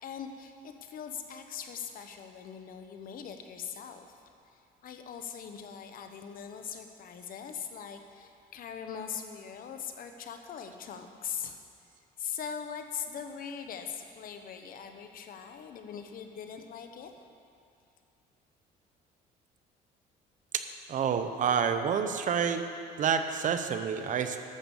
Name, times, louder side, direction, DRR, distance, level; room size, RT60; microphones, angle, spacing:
voice 1, 0.0-4.2 4.5-11.6 12.2-17.1, left 7 dB, 55° left, 6 dB, 1.0 m, -41 dB
voice 2, 20.9-22.6 23.0-24.4, right 7 dB, 50° right, 8 dB, 0.8 m, -28 dB
11.5 x 7.0 x 7.2 m, 2.5 s
cardioid pair, 110°, 17 cm